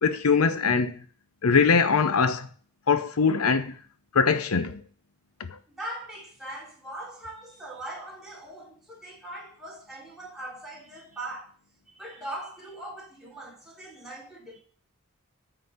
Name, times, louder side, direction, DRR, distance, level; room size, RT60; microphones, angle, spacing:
voice 1, 0.0-0.9 1.4-2.5 2.9-3.7 4.1-4.8, left 5 dB, 90° left, 0.7 m, -22 dB
voice 2, 5.7-11.5 12.0-14.6, right 1 dB, ahead, 3.1 m, -40 dB
9.4 x 4.1 x 6.4 m
head